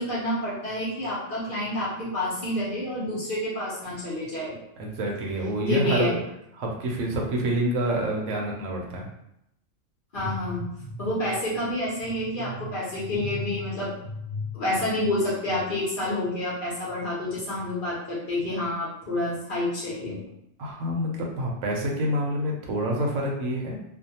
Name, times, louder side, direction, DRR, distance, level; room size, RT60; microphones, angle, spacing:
voice 1, 0.0-4.6 5.6-6.1 10.1-20.2, left 1 dB, 45° left, -6 dB, 0.9 m, -29 dB
voice 2, 4.8-6.2 6.6-9.0 20.6-23.8, right 1 dB, 85° right, -1 dB, 1.0 m, -27 dB
2.5 x 2.2 x 2.8 m, 0.79 s
omnidirectional pair, 1.3 m